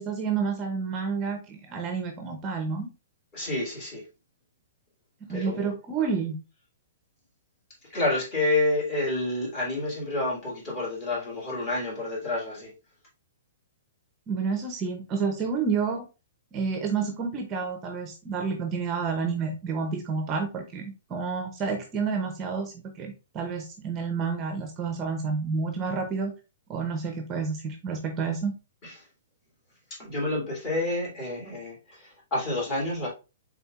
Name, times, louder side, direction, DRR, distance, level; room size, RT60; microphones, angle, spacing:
voice 1, 0.0-2.9 5.3-6.4 14.3-16.1 16.5-20.8 21.1-26.3 26.7-28.5, right 5 dB, 20° right, 0.6 m, -29 dB
voice 2, 3.3-4.0 5.3-5.7 7.9-12.7 28.8-28.9 29.9-33.1, left 2 dB, 30° left, 2.4 m, -29 dB
4.3 x 3.8 x 2.4 m
hypercardioid pair, 160°, 0 cm